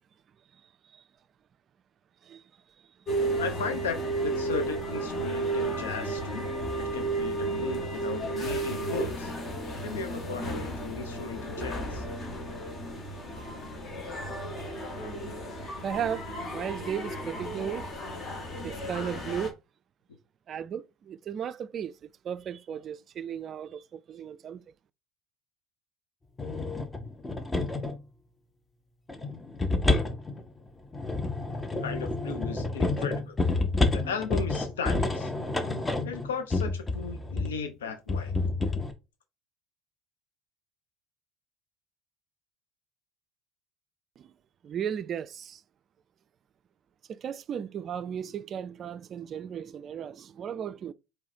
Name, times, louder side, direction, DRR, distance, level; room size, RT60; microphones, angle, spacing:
sound 1, 3.1-19.5, right 2 dB, 40° left, 1.5 m, -33 dB
voice 1, 3.4-9.3 9.8-12.0 31.8-33.4 33.9-35.3 36.0-38.3, left 6 dB, 80° left, 0.7 m, -36 dB
voice 2, 15.8-17.9 18.6-19.5 20.5-24.6 44.2-44.3 44.6-45.6 47.1-50.9, right 8 dB, 40° right, 0.3 m, -35 dB
sound 2, 26.4-28.0 29.1-37.6 38.1-38.9, left 2 dB, 15° left, 0.8 m, -29 dB
4.7 x 3.1 x 2.7 m
hypercardioid pair, 70°, 0 cm